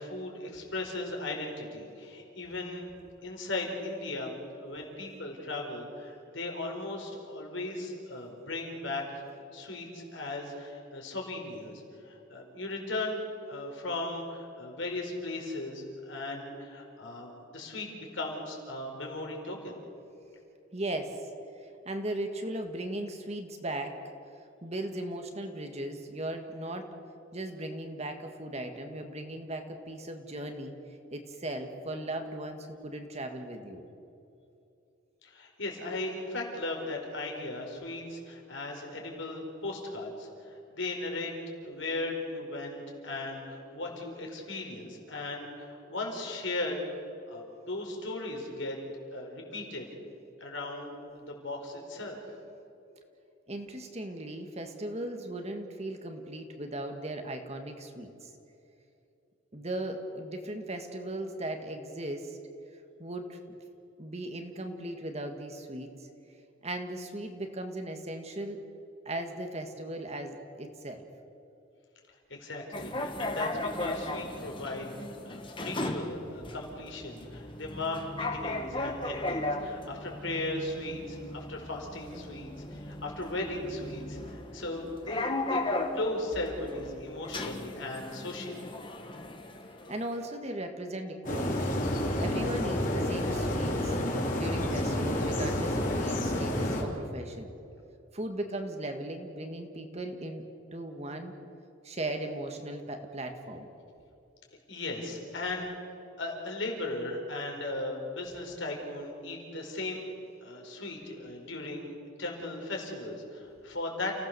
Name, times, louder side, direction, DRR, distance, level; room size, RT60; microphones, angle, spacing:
voice 1, 0.0-2.9 3.2-9.0 9.5-13.2 13.5-19.7 35.2-46.8 47.3-48.8 49.1-49.9 50.4-52.2 72.3-85.6 85.9-88.7 104.7-105.7 106.2-110.1 110.4-114.1, left 2 dB, 70° left, 1 dB, 4.7 m, -37 dB
voice 2, 20.7-21.2 21.8-24.0 24.6-26.9 27.3-30.7 31.1-33.8 53.5-58.3 59.5-62.4 63.0-63.6 64.0-66.1 66.6-68.6 69.0-71.0 89.9-94.0 94.3-97.5 98.1-100.4 100.7-101.3 101.8-103.7, right 1 dB, 35° right, 5 dB, 1.7 m, -37 dB
sound 1, 72.7-90.2, left 2 dB, 25° left, 1.7 m, -37 dB
sound 2, 91.2-96.8, left 1 dB, 40° left, 3.5 m, -29 dB
29.5 x 16.5 x 6.9 m, 2.8 s
head